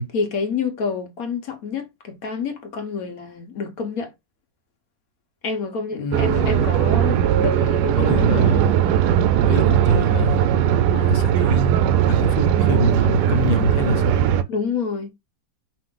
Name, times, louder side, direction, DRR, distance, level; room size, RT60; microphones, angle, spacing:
voice 1, 0.1-4.1 5.4-8.6 14.5-15.1, left 5 dB, 55° left, 1.3 m, -28 dB
voice 2, 5.9-6.6 8.0-8.8 9.5-10.4 10.9-11.8 12.1-14.2, left 2 dB, 85° left, 1.5 m, -25 dB
sound 1, 6.1-14.4, right 10 dB, 75° right, 1.0 m, -18 dB
5.1 x 2.6 x 3.7 m
omnidirectional pair, 1.9 m